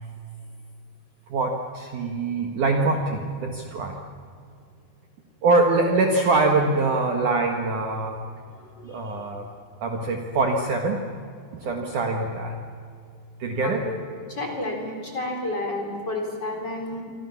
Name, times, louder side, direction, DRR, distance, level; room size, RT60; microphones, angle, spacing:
voice 1, 1.3-4.0 5.4-8.2 8.8-9.4 9.8-11.0 11.5-12.6 13.4-13.9, right 3 dB, 55° right, 3 dB, 2.5 m, -24 dB
voice 2, 8.7-9.2 13.6-14.0 14.3-17.0, left 2 dB, 25° left, 2 dB, 3.7 m, -31 dB
26.5 x 25.5 x 7.2 m, 2.4 s
omnidirectional pair, 5.2 m